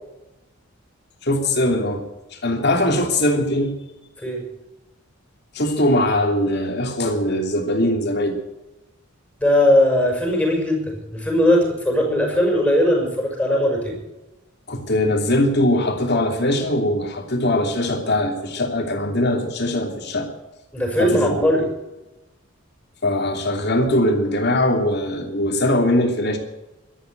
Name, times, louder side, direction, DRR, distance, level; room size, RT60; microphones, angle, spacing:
voice 1, 1.2-2.0 2.4-3.8 5.5-8.4 14.7-20.3 21.0-21.5 23.0-26.4, left 1 dB, 50° left, 3 dB, 3.1 m, -21 dB
voice 2, 9.4-14.0 20.7-21.6, left 1 dB, 5° left, 1 dB, 6.0 m, -19 dB
13.0 x 11.5 x 9.3 m, 0.97 s
head